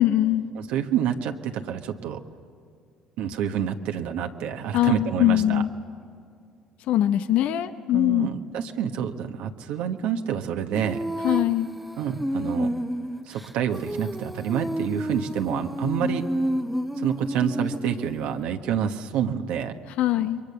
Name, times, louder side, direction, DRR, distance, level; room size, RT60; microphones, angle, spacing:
voice 1, 0.0-0.5 4.7-5.7 6.9-8.3 11.2-11.7 20.0-20.4, left 13 dB, 70° left, 10 dB, 0.8 m, -22 dB
voice 2, 0.5-2.2 3.2-5.6 7.9-11.0 12.0-12.7 13.3-16.2 17.0-19.7, right 9 dB, 75° right, 4 dB, 1.2 m, -28 dB
Female singing, 10.7-18.4, equal, ahead, 0.9 m, -30 dB
28.5 x 22.5 x 6.8 m, 2.4 s
supercardioid pair, 70°, 2 cm